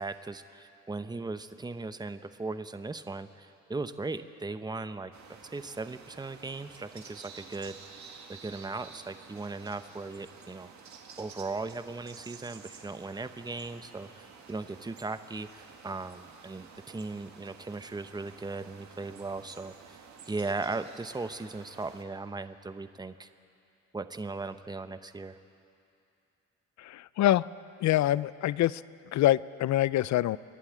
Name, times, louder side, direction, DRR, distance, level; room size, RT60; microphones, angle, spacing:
voice 1, 0.0-7.8 8.3-10.7 11.2-20.0 20.3-23.3 23.9-25.4, right 3 dB, 15° right, 10 dB, 0.8 m, -38 dB
sound 1, 5.1-22.0, right 6 dB, 65° right, 2.0 m, -51 dB
voice 2, 26.8-27.4 27.8-28.8 29.1-30.4, left 14 dB, 65° left, 19 dB, 0.5 m, -25 dB
28.0 x 11.5 x 8.6 m, 2.6 s
cardioid pair, 90°, 30 cm